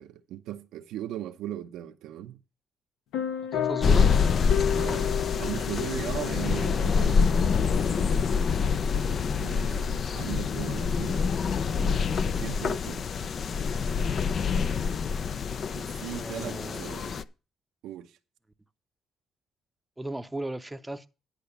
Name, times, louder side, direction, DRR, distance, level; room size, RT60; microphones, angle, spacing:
voice 1, 0.0-2.4 4.7-7.3 9.4-11.2 11.7-13.1 15.7-17.2 17.8-18.1, right 12 dB, 90° right, 0.7 m, -38 dB
sound 1, 3.1-11.2, left 9 dB, 90° left, 1.1 m, -35 dB
voice 2, 3.5-4.1 8.6-8.9 16.2-17.0 20.0-21.1, right 1 dB, 10° right, 0.7 m, -36 dB
sound 2, 3.8-17.2, left 6 dB, 50° left, 0.5 m, -26 dB
10.5 x 5.0 x 6.7 m
cardioid pair, 90°, 0 cm